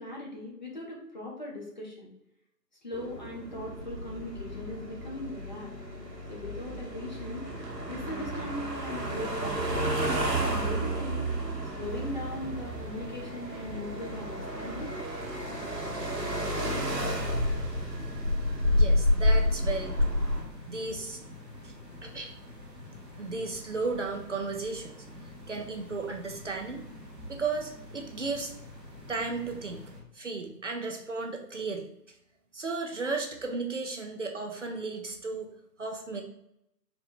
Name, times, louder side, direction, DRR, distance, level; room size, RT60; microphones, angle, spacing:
voice 1, 0.0-2.1 2.8-5.7 6.3-7.5 7.9-9.8 10.4-11.2 11.7-14.9, left 2 dB, 30° left, -2 dB, 0.7 m, -39 dB
sound 1, 2.9-20.4, equal, 75° right, 1.2 m, -30 dB
sound 2, 11.8-30.0, left 1 dB, 15° right, 0.9 m, -46 dB
voice 2, 18.7-20.1 20.7-21.2 21.6-21.7 22.0-22.3 23.2-25.0 25.5-26.8 27.3-28.5 29.1-29.8 30.1-31.9 32.5-35.5 35.8-36.2, right 3 dB, 50° right, 3 dB, 0.5 m, -34 dB
4.3 x 2.1 x 4.2 m, 0.80 s
figure-of-eight pair, 140°, 49 cm